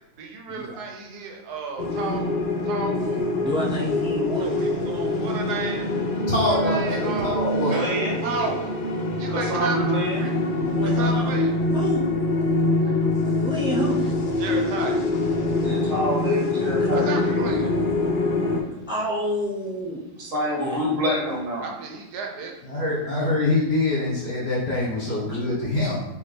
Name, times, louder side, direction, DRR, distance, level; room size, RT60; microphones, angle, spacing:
voice 1, 0.2-2.4 2.6-3.3 4.4-5.9 6.5-7.3 8.2-8.7 9.2-9.8 10.2-10.3 11.0-11.5 14.4-15.1 16.9-17.7 21.6-22.5, right 4 dB, 85° right, 1.3 m, -32 dB
sound 1, 1.8-18.6, left 2 dB, 65° left, 0.5 m, -24 dB
voice 2, 3.4-4.5 10.8-11.4 11.7-12.1 12.8-14.1 16.8-17.0 18.9-20.0 20.6-20.9, equal, 5° right, 0.4 m, -29 dB
voice 3, 6.3-7.9 22.6-26.0, left 2 dB, 45° left, 1.3 m, -24 dB
voice 4, 7.7-8.1 9.3-10.2 15.6-17.6 20.2-21.6, equal, 55° right, 1.5 m, -27 dB
4.1 x 3.0 x 3.3 m
omnidirectional pair, 1.7 m